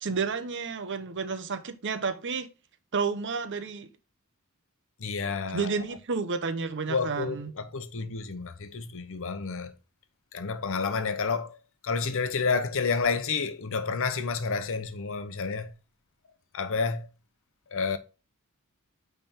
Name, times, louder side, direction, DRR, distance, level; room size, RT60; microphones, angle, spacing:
voice 1, 0.0-2.5 2.9-3.9 5.5-7.5, right 5 dB, 55° right, 0.8 m, -31 dB
voice 2, 5.0-5.8 6.9-9.7 10.3-11.6 11.8-15.7 16.5-17.1 17.7-18.0, left 4 dB, 60° left, 0.8 m, -30 dB
8.9 x 3.5 x 4.4 m
head